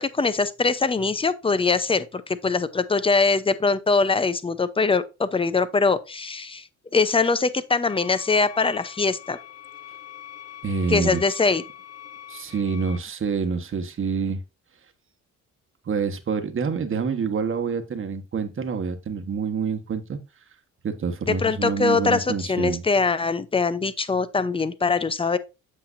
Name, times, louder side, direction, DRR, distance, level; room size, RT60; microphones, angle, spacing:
voice 1, 0.0-6.7 6.9-9.4 10.9-11.6 21.2-25.4, left 4 dB, 20° left, 0.7 m, -22 dB
sound 1, 7.9-13.0, left 11 dB, 55° left, 0.9 m, -43 dB
voice 2, 10.6-11.2 12.3-14.4 15.8-20.2 20.8-22.8, right 5 dB, 45° right, 1.4 m, -27 dB
8.4 x 6.9 x 2.6 m
cardioid pair, 90°, 30 cm